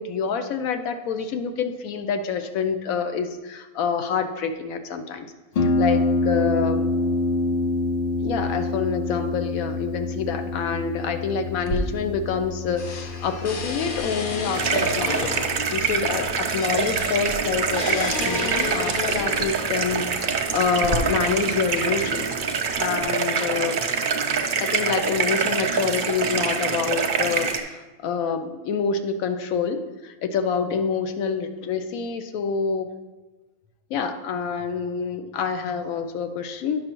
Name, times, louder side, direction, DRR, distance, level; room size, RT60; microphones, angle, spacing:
voice 1, 0.0-5.3 5.6-6.9 8.2-22.3 22.7-23.8 24.6-32.9 33.9-36.8, left 6 dB, 70° left, 8 dB, 1.1 m, -27 dB
Harp, 5.6-23.0, left 2 dB, 90° left, 0.4 m, -29 dB
sound 1, 11.6-12.5 12.8-19.6 20.4-21.0, left 2 dB, 50° left, 0.7 m, -32 dB
sound 2, 14.5-27.6, right 5 dB, 65° right, 0.5 m, -25 dB
9.7 x 6.3 x 3.0 m, 1.2 s
omnidirectional pair, 1.6 m